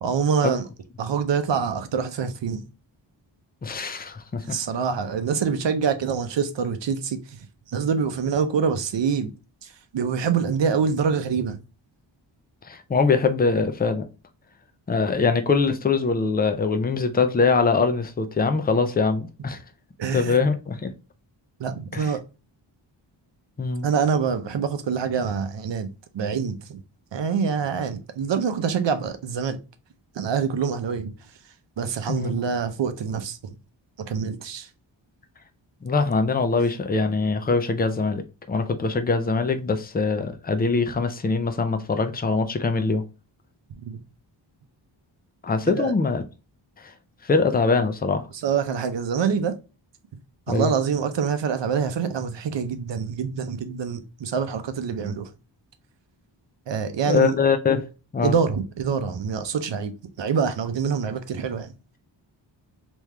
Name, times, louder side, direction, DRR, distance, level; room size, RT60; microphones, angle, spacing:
voice 1, 0.0-0.6 1.0-2.6 4.5-7.2 7.7-9.3 9.6-11.6 20.0-20.4 21.6-22.2 23.8-25.9 26.1-26.8 27.1-29.6 30.2-31.1 31.8-33.6 34.1-34.7 43.8-44.0 45.7-45.9 48.4-49.5 50.5-55.3 56.7-57.3 58.2-59.9 60.2-61.7, right 6 dB, 70° right, 0.7 m, -25 dB
voice 2, 3.6-4.6 12.7-14.0 14.9-19.6 20.1-20.9 21.9-22.1 23.6-23.9 32.1-32.5 35.8-38.2 38.5-43.0 45.4-46.2 46.8-46.9 47.2-48.3 50.5-50.7 57.0-57.9 58.1-58.3, left 4 dB, 20° left, 0.5 m, -23 dB
3.5 x 3.0 x 3.2 m
wide cardioid pair, 145°, 46 cm